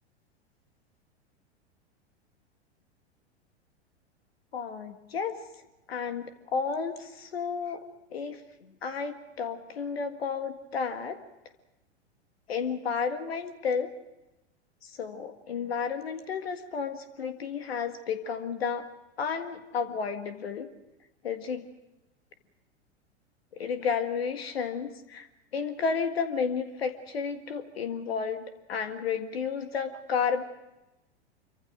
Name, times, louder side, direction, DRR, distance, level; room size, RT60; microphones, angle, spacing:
voice 1, 4.5-5.4 5.9-7.8 8.1-8.4 8.8-11.2 12.5-13.9 14.8-18.8 19.2-20.7 21.2-21.7 23.6-25.3 25.5-30.4, left 6 dB, 65° left, 9 dB, 1.8 m, -32 dB
26.5 x 24.5 x 5.0 m, 0.97 s
figure-of-eight pair, 95°, 33 cm